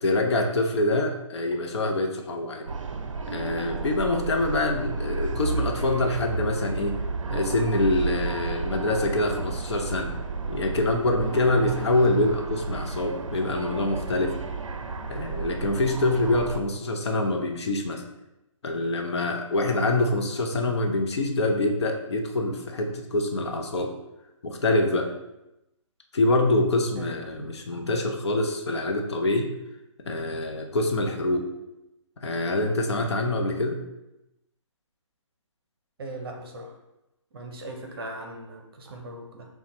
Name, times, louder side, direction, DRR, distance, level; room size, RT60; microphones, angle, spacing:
voice 1, 0.0-2.7 3.3-7.0 7.3-10.1 10.5-14.4 15.1-18.0 18.6-23.9 24.4-25.1 26.1-29.5 30.1-31.5 32.2-33.8, left 2 dB, 55° left, 2 dB, 0.6 m, -25 dB
sound 1, 2.7-16.6, right 4 dB, 70° right, 0.5 m, -32 dB
voice 2, 27.0-27.8 36.0-36.7 37.3-39.5, right 1 dB, 45° right, 3 dB, 0.8 m, -39 dB
6.4 x 2.3 x 2.9 m, 0.91 s
figure-of-eight pair, 145°, 17 cm